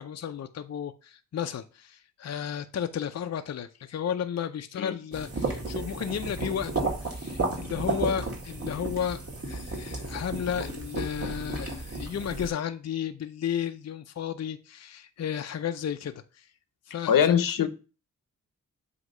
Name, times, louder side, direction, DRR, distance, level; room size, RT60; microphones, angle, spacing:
voice 1, 0.0-16.5 16.9-17.7, left 8 dB, 50° left, 0.6 m, -33 dB
sound 1, 5.1-12.5, right 3 dB, 45° right, 2.2 m, -33 dB
voice 2, 17.1-17.7, left 8 dB, 80° left, 0.9 m, -22 dB
7.9 x 2.9 x 5.4 m
cardioid pair, 85°, 33 cm